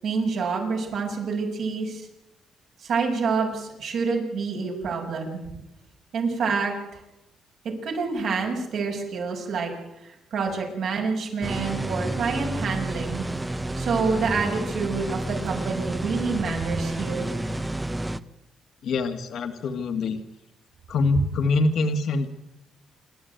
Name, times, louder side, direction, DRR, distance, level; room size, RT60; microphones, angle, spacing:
voice 1, 0.0-2.0 2.8-5.6 6.1-7.0 7.8-9.7 10.0-13.2 13.7-17.3, right 4 dB, 70° right, 1 dB, 6.7 m, -27 dB
sound 1, 11.4-18.2, right 2 dB, 15° right, 0.9 m, -30 dB
voice 2, 18.8-20.2 20.9-22.3, left 3 dB, 70° left, 6 dB, 2.1 m, -24 dB
27.5 x 12.5 x 9.5 m, 0.90 s
cardioid pair, 90°, 0 cm